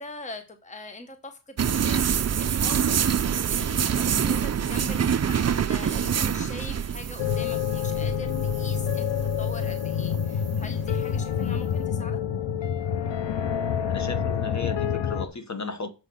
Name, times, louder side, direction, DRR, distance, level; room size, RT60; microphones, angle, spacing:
voice 1, 0.0-12.2, left 2 dB, 15° left, 0.9 m, -42 dB
sound 1, 1.6-11.7, right 8 dB, 40° right, 0.4 m, -26 dB
sound 2, 7.2-15.3, left 8 dB, 75° left, 0.8 m, -27 dB
voice 2, 13.9-15.9, left 4 dB, 40° left, 1.2 m, -35 dB
7.2 x 5.9 x 6.7 m
wide cardioid pair, 160°, 44 cm